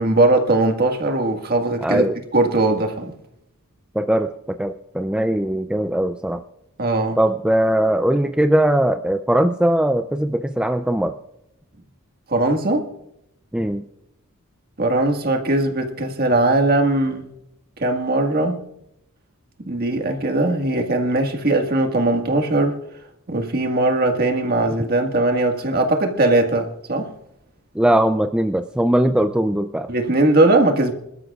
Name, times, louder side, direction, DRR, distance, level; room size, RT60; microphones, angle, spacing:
voice 1, 0.0-2.1 2.3-3.1 6.8-7.2 12.3-12.9 14.8-17.3 17.8-18.6 19.6-22.8 23.3-27.1 29.9-30.9, right 2 dB, 45° right, 1.7 m, -19 dB
voice 2, 1.8-2.1 4.0-6.4 7.2-11.2 13.5-13.8 27.8-29.9, right 1 dB, 5° right, 0.4 m, -20 dB
26.0 x 13.0 x 2.4 m
head